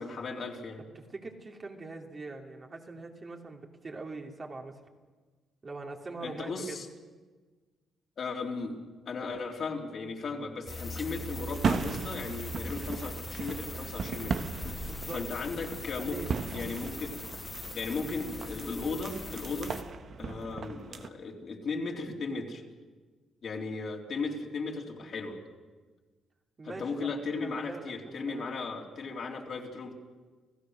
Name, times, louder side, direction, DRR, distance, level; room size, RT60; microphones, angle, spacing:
voice 1, 0.0-0.8 6.2-6.9 8.2-8.8 9.1-16.2 16.5-17.1 17.7-19.7 20.2-22.6 23.4-25.4 26.6-29.9, left 4 dB, 55° left, 0 dB, 3.5 m, -36 dB
voice 2, 0.9-4.8 5.6-6.8 14.8-15.2 16.0-16.3 26.6-27.1 27.4-28.4, right 3 dB, 35° right, 1 dB, 3.0 m, -42 dB
sound 1, 10.7-19.8, left 2 dB, 25° left, 2.0 m, -41 dB
sound 2, 11.5-21.1, right 5 dB, 55° right, 1.3 m, -37 dB
28.5 x 15.5 x 6.5 m, 1.4 s
cardioid pair, 90°, 0 cm